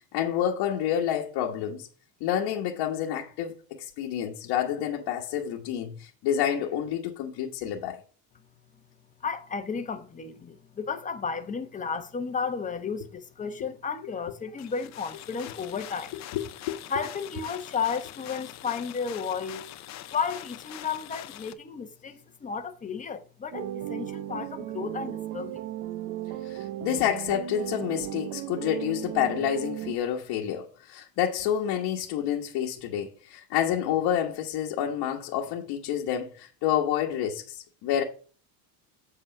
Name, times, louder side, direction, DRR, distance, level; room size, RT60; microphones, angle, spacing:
voice 1, 0.1-1.9 2.2-8.0 16.3-16.8 26.4-38.0, left 10 dB, 60° left, 1.4 m, -29 dB
voice 2, 9.2-16.2 16.9-19.7 20.1-25.6, left 6 dB, 15° left, 1.0 m, -33 dB
sound 1, 14.6-21.5, left 13 dB, 40° left, 0.7 m, -43 dB
sound 2, 23.5-30.0, right 12 dB, 55° right, 0.9 m, -36 dB
7.9 x 4.2 x 7.0 m
cardioid pair, 140°, 43 cm